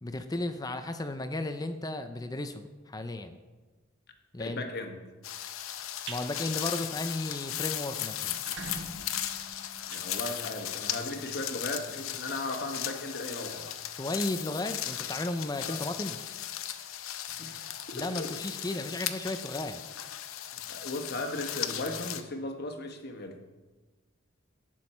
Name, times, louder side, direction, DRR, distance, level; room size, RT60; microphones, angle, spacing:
voice 1, 0.0-3.4 4.3-4.7 6.1-8.4 13.9-16.2 17.9-19.8, left 2 dB, 20° left, 9 dB, 0.5 m, -34 dB
voice 2, 4.4-5.0 9.9-13.7 15.7-15.8 17.4-18.3 20.5-23.4, left 2 dB, 50° left, 5 dB, 1.3 m, -37 dB
sound 1, 5.2-22.2, left 11 dB, 80° left, 0.7 m, -37 dB
sound 2, 5.8-6.2 6.7-6.9 7.3-7.4 7.6-7.7 8.2-10.8, right 3 dB, 55° right, 1.3 m, -43 dB
18.0 x 6.3 x 4.4 m, 1.3 s
head